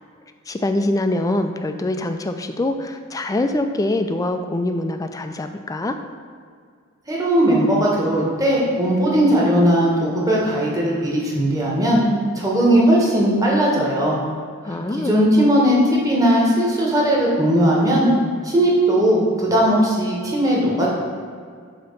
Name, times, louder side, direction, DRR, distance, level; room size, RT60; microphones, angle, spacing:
voice 1, 0.5-6.0 14.6-15.2, left 1 dB, 15° left, 7 dB, 0.3 m, -24 dB
voice 2, 7.1-12.0 12.3-14.2 15.0-18.1 18.4-20.9, equal, 15° right, -4 dB, 1.2 m, -18 dB
7.6 x 2.9 x 5.6 m, 2.1 s
head